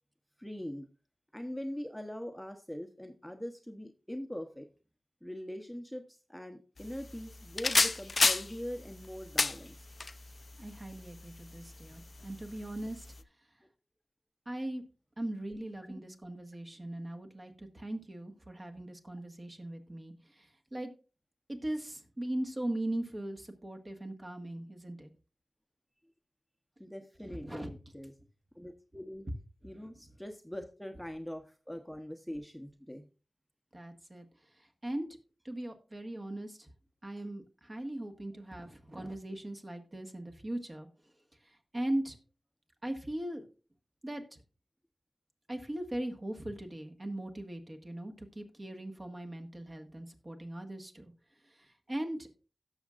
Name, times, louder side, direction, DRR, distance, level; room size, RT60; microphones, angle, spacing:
voice 1, 0.4-0.9 1.3-4.7 5.2-9.8 13.6-13.7 15.9-16.0 26.8-28.1 28.5-29.2 29.6-33.1, equal, ahead, 5 dB, 0.9 m, -42 dB
sound 1, 6.8-13.2, left 3 dB, 55° left, 0.5 m, -34 dB
voice 2, 10.6-13.1 14.4-14.8 15.2-20.9 21.5-25.1 27.2-27.7 33.7-34.3 34.5-35.1 35.4-36.7 37.0-40.9 41.4-42.2 42.8-43.5 44.0-44.4 45.5-51.1 51.4-52.3, right 1 dB, 35° right, 3 dB, 1.7 m, -39 dB
17.0 x 6.4 x 2.5 m, 0.35 s
cardioid pair, 50°, 0 cm